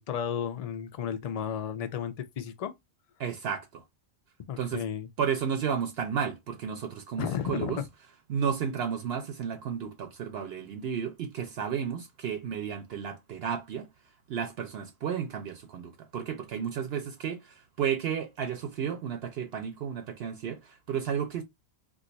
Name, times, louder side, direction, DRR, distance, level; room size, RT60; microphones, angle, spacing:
voice 1, 0.0-2.7 4.5-5.1 7.2-7.9, left 8 dB, 55° left, 0.4 m, -33 dB
voice 2, 3.2-3.8 4.6-4.8 5.2-7.8 8.3-13.9 14.3-21.4, right 7 dB, 70° right, 0.8 m, -32 dB
2.5 x 2.3 x 3.9 m
omnidirectional pair, 1.1 m